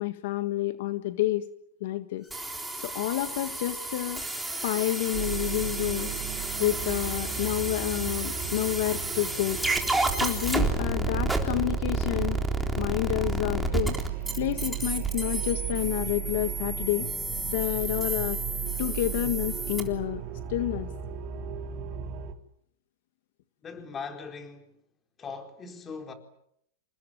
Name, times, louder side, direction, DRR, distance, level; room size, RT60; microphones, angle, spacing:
voice 1, 0.0-1.5 1.8-2.2 2.8-4.2 4.6-6.1 6.6-9.6 10.1-12.4 12.8-14.0 14.4-17.1 17.5-18.4 18.8-20.2 20.5-20.9, left 15 dB, 65° left, 1.7 m, -29 dB
sound 1, 2.3-19.8, right 2 dB, 5° right, 3.7 m, -31 dB
sound 2, 5.1-22.3, right 10 dB, 40° right, 3.1 m, -36 dB
voice 2, 23.6-24.8 25.2-26.1, left 5 dB, 20° left, 4.3 m, -40 dB
28.5 x 19.5 x 9.2 m
supercardioid pair, 150°, 0 cm